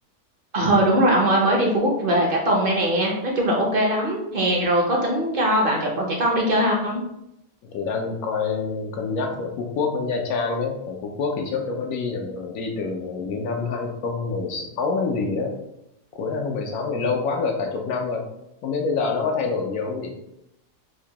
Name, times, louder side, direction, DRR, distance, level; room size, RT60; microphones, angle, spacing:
voice 1, 0.5-7.0, right 1 dB, 50° right, -1 dB, 0.7 m, -21 dB
voice 2, 7.6-15.6 16.1-18.2 18.6-20.1, left 4 dB, 80° left, 2 dB, 1.1 m, -26 dB
4.7 x 2.2 x 2.8 m, 0.83 s
omnidirectional pair, 1.5 m